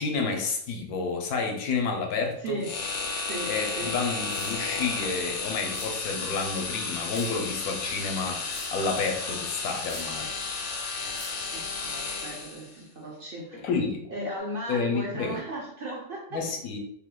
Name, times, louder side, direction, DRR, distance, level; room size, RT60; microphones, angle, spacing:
voice 1, 0.0-2.6 3.5-10.3 13.5-14.1 14.7-15.4 16.3-16.8, left 4 dB, 80° left, 2 dB, 1.2 m, -30 dB
voice 2, 2.4-2.8 3.2-4.0 11.0-11.2 11.5-13.7 14.1-16.5, right 1 dB, 70° right, -2 dB, 0.5 m, -36 dB
sound 1, 2.6-12.7, left 4 dB, 65° left, 0.9 m, -33 dB
sound 2, 4.3-4.5 5.7-5.8 7.1-7.3 8.5-8.7 9.9-10.0 11.2-11.3, equal, 10° left, 0.6 m, -42 dB
3.5 x 2.8 x 2.3 m, 0.68 s
omnidirectional pair, 1.6 m